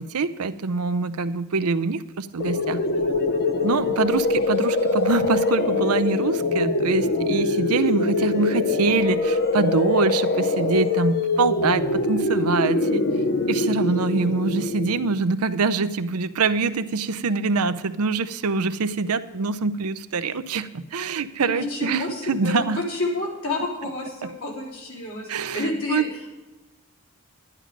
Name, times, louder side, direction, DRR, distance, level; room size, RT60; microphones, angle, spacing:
voice 1, 0.0-2.8 3.6-13.1 13.5-22.8 24.2-24.3 25.3-26.1, right 4 dB, 85° right, 12 dB, 0.6 m, -24 dB
sound 1, 2.4-15.2, left 3 dB, 45° left, 0.7 m, -23 dB
voice 2, 21.4-26.1, left 2 dB, 65° left, -3 dB, 3.9 m, -29 dB
11.5 x 11.0 x 5.1 m, 1.1 s
head